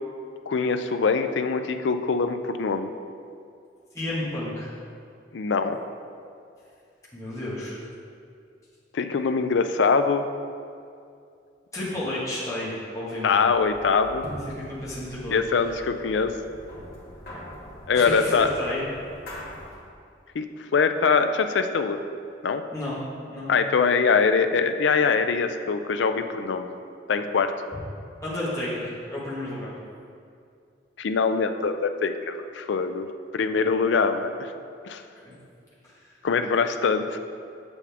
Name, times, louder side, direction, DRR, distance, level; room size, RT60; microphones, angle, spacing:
voice 1, 0.5-2.9 5.3-5.8 8.9-10.2 13.2-14.2 15.3-16.3 17.9-18.5 20.3-20.4 20.7-22.0 22.4-22.6 23.5-26.7 27.1-27.5 31.0-33.1 33.3-34.5 34.9-35.0 36.2-37.2, left 5 dB, 80° left, 8 dB, 0.4 m, -23 dB
voice 2, 3.9-4.7 7.1-7.7 11.7-13.3 14.6-15.4 17.9-18.8 22.7-23.0 23.3-23.5 28.2-29.7 35.2-35.3 35.8-36.1, left 1 dB, 15° left, -8 dB, 1.6 m, -32 dB
sound 1, 13.4-19.9, equal, 55° left, 1.8 m, -42 dB
7.0 x 6.9 x 3.5 m, 2.4 s
head